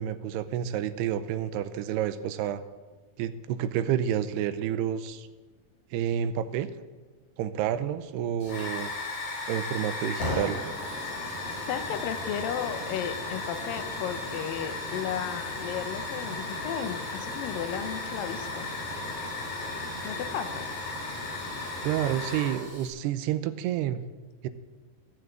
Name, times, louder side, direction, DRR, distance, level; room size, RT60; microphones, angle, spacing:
voice 1, 0.0-2.6 3.2-5.3 5.9-6.7 7.4-8.9 9.5-10.6 21.8-24.0 24.4-24.5, right 10 dB, 90° right, 11 dB, 2.7 m, -29 dB
Hiss / Fire, 8.4-22.9, left 2 dB, 45° left, 6.6 m, -35 dB
voice 2, 11.7-18.7 20.0-20.7, left 9 dB, 75° left, 9 dB, 2.2 m, -34 dB
17.0 x 6.4 x 8.9 m, 1.3 s
omnidirectional pair, 4.7 m